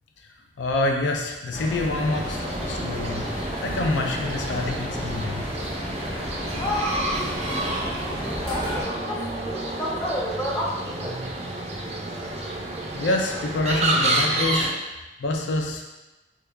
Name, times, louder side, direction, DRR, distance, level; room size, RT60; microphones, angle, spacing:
voice 1, 0.6-5.5 6.5-6.7 12.9-14.8 15.2-15.9, left 2 dB, 85° left, 2 dB, 0.4 m, -27 dB
sound 1, 1.5-8.8, equal, 35° left, 1.4 m, -32 dB
sound 2, 2.1-14.7, right 1 dB, 35° right, 0.4 m, -29 dB
voice 2, 6.5-11.2, equal, 15° left, -4 dB, 0.6 m, -31 dB
3.1 x 2.3 x 3.4 m, 1.1 s
head